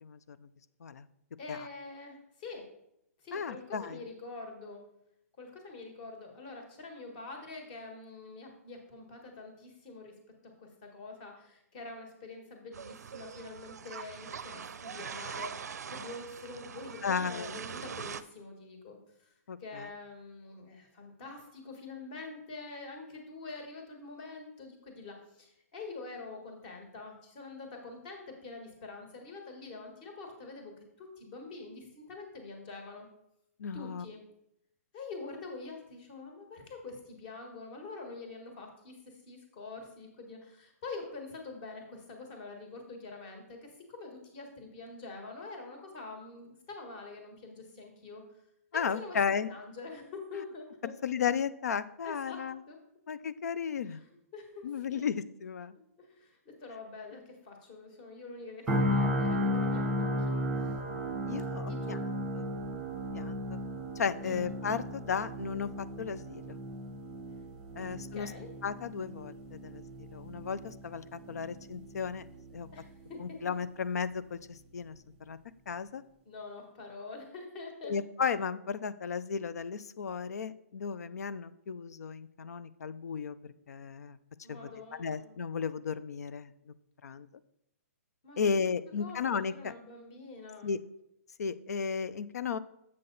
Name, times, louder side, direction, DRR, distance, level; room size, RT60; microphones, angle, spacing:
voice 1, 0.0-0.5 0.8-1.1 1.5-1.7 3.3-4.0 17.0-17.5 19.5-19.9 33.6-34.0 48.7-49.5 51.0-52.6 53.1-54.0 54.6-55.7 61.3-62.0 62.4-62.5 63.1-63.4 64.0-66.6 67.7-68.3 68.6-72.3 72.5-72.7 73.2-75.0 75.3-75.4 75.7-76.0 77.8-84.2 84.5-84.7 85.0-86.7 87.0-87.3 88.4-89.7 90.6-90.8 91.4-92.6, left 6 dB, 80° left, 15 dB, 0.5 m, -34 dB
voice 2, 1.4-2.7 3.2-4.8 5.4-10.1 10.6-19.3 19.6-33.0 33.7-34.2 34.9-38.9 39.3-43.6 43.9-48.2 48.7-49.2 49.5-50.9 52.0-52.8 53.9-54.0 54.3-55.1 56.0-60.4 61.7-62.1 64.2-64.5 67.8-67.9 68.1-68.5 72.7-73.4 76.2-77.9 84.4-85.4 88.2-88.7 89.0-90.7, left 3 dB, 30° left, 3 dB, 1.5 m, -45 dB
sound 1, 12.7-18.2, right 7 dB, 90° right, 0.5 m, -42 dB
sound 2, 58.7-72.7 73.0-73.2, equal, 5° right, 1.0 m, -35 dB
7.6 x 5.8 x 4.0 m, 0.80 s
hypercardioid pair, 165°, 9 cm